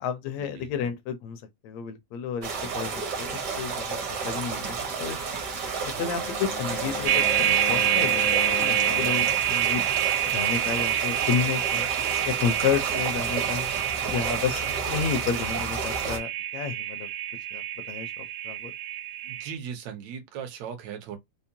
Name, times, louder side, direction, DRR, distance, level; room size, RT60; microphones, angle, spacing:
voice 1, 0.0-4.0 4.2-5.2 5.8-9.8 10.3-11.9 12.3-13.7 14.1-17.1 17.5-18.7, left 7 dB, 75° left, 1.7 m, -31 dB
sound 1, 2.4-16.2, right 5 dB, 55° right, 1.2 m, -32 dB
Wind instrument woodwind instrument, 5.9-9.5, left 4 dB, 90° left, 1.1 m, -35 dB
sound 2, 7.0-19.5, right 13 dB, 90° right, 2.1 m, -27 dB
voice 2, 19.2-21.2, right 7 dB, 70° right, 2.1 m, -38 dB
5.3 x 2.1 x 2.7 m
omnidirectional pair, 3.5 m